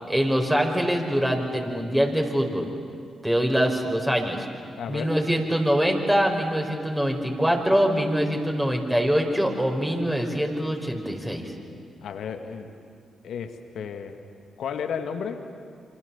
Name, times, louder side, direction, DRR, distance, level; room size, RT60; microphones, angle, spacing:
voice 1, 0.1-2.7 3.2-4.5 4.9-11.5, equal, 10° right, 2 dB, 5.4 m, -24 dB
voice 2, 4.8-5.1 12.0-12.7 13.2-14.2 14.6-15.4, left 7 dB, 70° left, 7 dB, 2.0 m, -33 dB
27.5 x 26.0 x 7.3 m, 2.3 s
hypercardioid pair, 40°, 0 cm